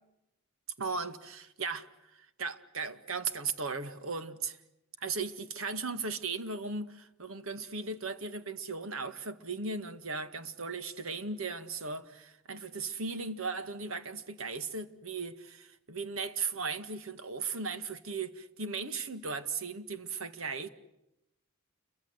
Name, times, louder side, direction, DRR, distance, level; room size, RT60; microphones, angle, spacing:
voice 1, 0.8-4.6 5.0-20.7, right 4 dB, 70° right, 1.9 m, -37 dB
29.5 x 24.5 x 8.2 m
head